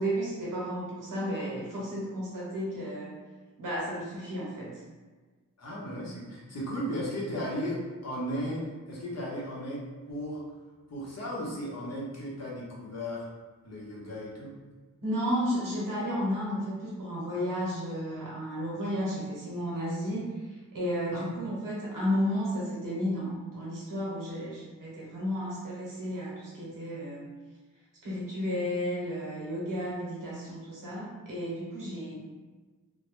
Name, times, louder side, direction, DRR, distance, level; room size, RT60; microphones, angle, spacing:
voice 1, 0.0-3.2 3.6-4.8 15.0-27.3 28.0-32.2, equal, 90° right, -5 dB, 0.8 m, -33 dB
voice 2, 5.6-10.4 10.9-13.3 13.6-14.5 21.1-21.2, equal, 55° left, -5 dB, 0.8 m, -35 dB
2.2 x 2.1 x 3.0 m, 1.3 s
cardioid pair, 50°, 32 cm